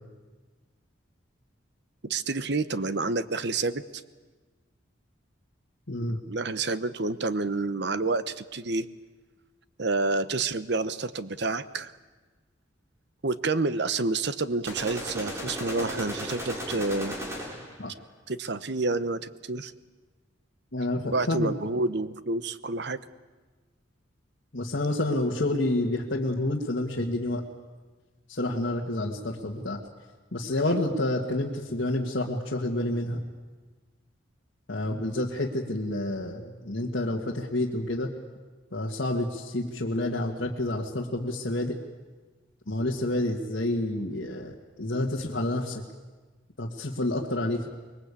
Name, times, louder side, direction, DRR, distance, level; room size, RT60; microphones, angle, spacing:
voice 1, 2.0-4.0 6.1-8.9 9.8-11.9 13.2-17.2 18.3-19.7 21.1-23.0, right 3 dB, 60° right, 14 dB, 1.0 m, -29 dB
voice 2, 5.9-6.2 17.8-17.9 20.7-21.5 24.5-27.4 28.3-29.8 30.3-33.2 34.7-38.1 38.7-41.7 42.7-45.8 46.6-47.7, left 1 dB, 60° left, -3 dB, 1.9 m, -29 dB
sound 1, 14.7-17.8, equal, 15° right, 4.3 m, -35 dB
25.0 x 21.5 x 8.5 m, 1.3 s
head